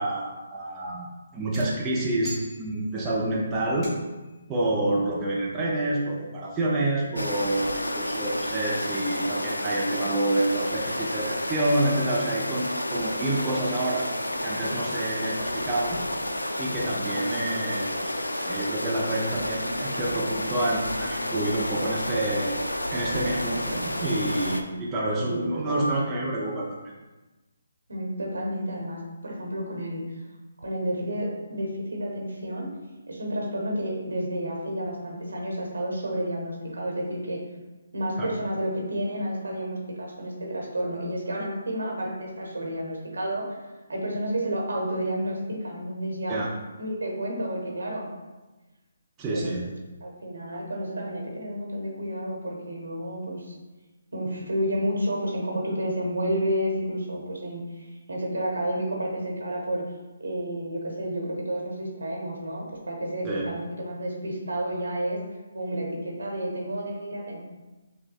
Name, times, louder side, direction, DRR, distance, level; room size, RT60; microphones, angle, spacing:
voice 1, 0.0-3.9 4.5-14.1 14.4-16.0 16.6-22.6 22.9-26.9 38.2-38.3 46.3-46.5 49.2-49.7 63.2-63.4, right 1 dB, 20° right, -5 dB, 0.5 m, -28 dB
sound 1, 1.5-3.2 3.8-4.4, right 1 dB, 15° left, 1.0 m, -43 dB
sound 2, 7.2-24.6, left 1 dB, 85° left, 0.3 m, -30 dB
voice 2, 25.2-25.9 27.9-30.1 30.6-32.7 33.1-37.4 37.9-43.5 43.9-46.4 46.8-48.1 49.3-49.5 50.0-53.5 54.1-57.6 58.1-59.9 60.2-65.2 65.5-67.4, right 1 dB, 75° right, -1 dB, 1.0 m, -30 dB
6.2 x 2.2 x 2.3 m, 1.2 s
figure-of-eight pair, 140°, 0 cm